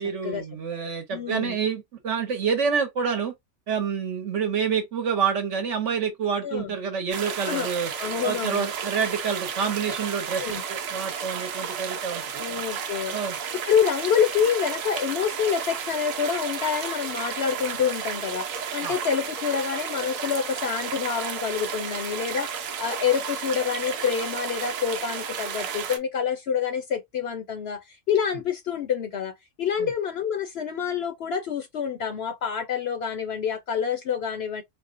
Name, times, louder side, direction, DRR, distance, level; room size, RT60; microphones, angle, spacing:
voice 1, 0.0-3.3 3.7-7.9 8.2-12.4 13.1-13.4 18.8-18.9 29.8-29.9, right 6 dB, 60° right, 1.2 m, -28 dB
voice 2, 1.1-1.6 6.4-6.7 7.5-7.7 8.0-8.7 10.3-10.6 12.4-13.4 13.6-34.6, left 7 dB, 60° left, 0.7 m, -27 dB
sound 1, 7.1-26.0, right 7 dB, 85° right, 1.1 m, -33 dB
4.2 x 2.1 x 2.5 m
omnidirectional pair, 1.4 m